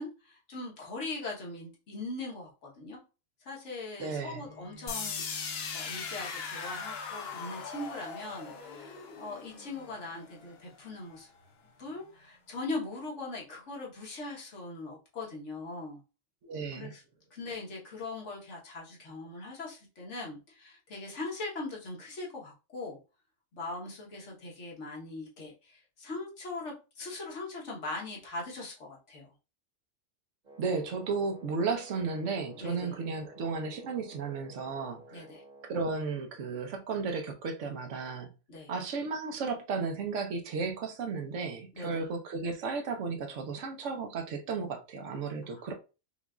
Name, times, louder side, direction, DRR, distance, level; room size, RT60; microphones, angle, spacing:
voice 1, 0.0-3.0 3.4-5.2 5.7-11.3 11.8-16.0 16.7-17.0 17.3-23.0 23.5-29.2 32.6-33.0 35.1-35.4 38.5-38.7 41.7-42.0 45.5-45.6, left 2 dB, 75° left, 1.5 m, -40 dB
voice 2, 4.0-4.4 16.4-16.9 30.6-35.3 35.6-38.3 38.7-45.7, right 4 dB, 80° right, 1.0 m, -34 dB
Bowed string instrument, 4.3-9.5, equal, 45° left, 1.3 m, -55 dB
sound 1, 4.9-10.8, left 5 dB, 60° left, 0.9 m, -39 dB
Wind instrument woodwind instrument, 30.4-35.8, right 2 dB, 40° right, 1.1 m, -53 dB
5.3 x 2.4 x 2.4 m
omnidirectional pair, 1.2 m